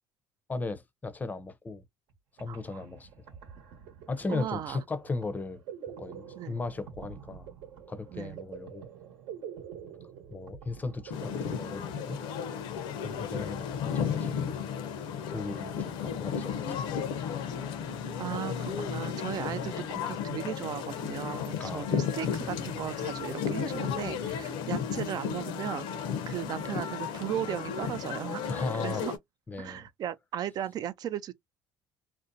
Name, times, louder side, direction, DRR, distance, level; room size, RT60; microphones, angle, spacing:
voice 1, 0.5-1.8 2.4-3.1 4.1-5.6 5.9-7.5 7.9-8.9 10.3-12.2 13.0-14.6 15.3-16.9 21.6-22.0 28.5-29.1 29.5-29.9, left 3 dB, 20° left, 0.6 m, -37 dB
sound 1, 2.1-2.2 2.4-13.0, right 8 dB, 75° right, 1.0 m, -47 dB
voice 2, 2.5-2.8 4.3-4.8 6.4-6.6 8.1-8.4 18.2-25.9 26.3-29.1 29.6-31.3, right 11 dB, 50° right, 0.4 m, -36 dB
sound 2, 11.1-29.2, left 7 dB, 70° left, 0.6 m, -34 dB
2.6 x 2.1 x 2.5 m
supercardioid pair, 85°, 9 cm